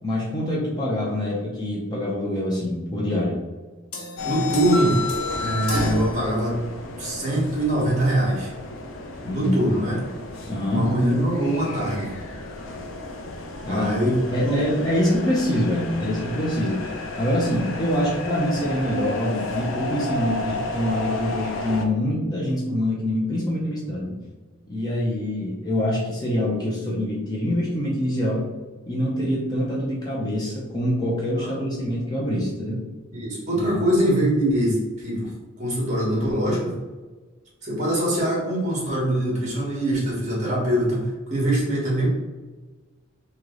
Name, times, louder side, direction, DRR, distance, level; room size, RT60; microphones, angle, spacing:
voice 1, 0.0-3.4 9.2-9.8 10.5-10.9 13.7-13.9 14.3-16.9 17.2-24.1 24.7-28.5 28.9-32.8 33.6-33.8, left 1 dB, 20° left, -5 dB, 0.6 m, -25 dB
sound 1, 3.9-6.9, left 1 dB, 85° left, 1.0 m, -36 dB
sound 2, 4.2-21.9, left 2 dB, 60° left, 0.5 m, -32 dB
voice 2, 4.2-5.0 5.4-6.6 7.0-8.5 9.3-10.0 10.7-12.1 13.6-14.1 14.4-14.8 31.3-31.5 33.1-35.3 35.6-36.7 37.6-42.1, right 1 dB, 35° right, -4 dB, 1.4 m, -23 dB
3.1 x 2.9 x 3.8 m, 1.3 s
head